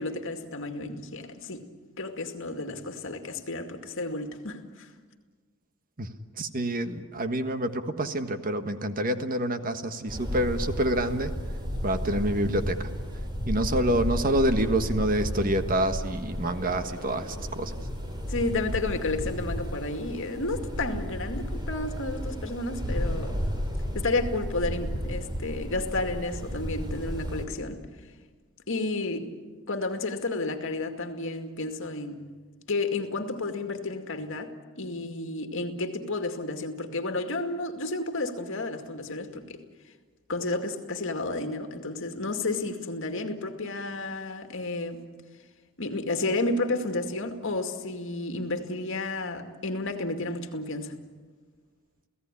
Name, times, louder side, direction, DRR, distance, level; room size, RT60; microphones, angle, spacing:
voice 1, 0.0-1.7 2.0-4.9 18.3-23.4 23.9-27.8 28.7-29.3 29.7-32.2 32.7-34.5 34.8-39.6 40.3-45.0 45.8-51.0, left 2 dB, 60° left, 2.3 m, -31 dB
voice 2, 6.4-11.3 11.8-12.9 13.5-17.7, right 1 dB, 40° right, 1.5 m, -27 dB
sound 1, 10.1-27.5, equal, 20° right, 4.0 m, -33 dB
29.5 x 17.0 x 9.9 m
head